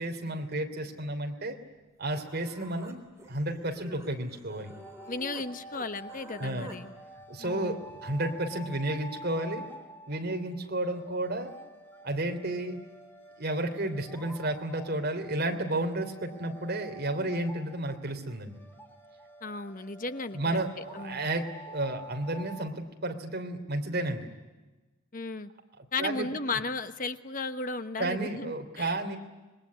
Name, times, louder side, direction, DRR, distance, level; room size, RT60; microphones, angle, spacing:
voice 1, 0.0-1.5 2.0-4.7 6.4-6.7 7.3-9.6 10.1-11.5 12.0-12.8 13.4-18.6 20.3-24.3 26.0-26.3 28.0-29.2, right 1 dB, 50° right, 5 dB, 3.1 m, -32 dB
Human voice, 1.8-1.9 2.1-5.5 5.7-6.8, equal, 15° right, 3.4 m, -49 dB
sound 1, 4.5-22.7, right 1 dB, 10° left, 2.0 m, -48 dB
voice 2, 5.1-6.9 7.4-7.9 19.4-21.2 25.1-25.5 25.9-29.0, left 3 dB, 40° left, 10 dB, 1.1 m, -35 dB
26.5 x 22.0 x 9.6 m, 1.2 s
head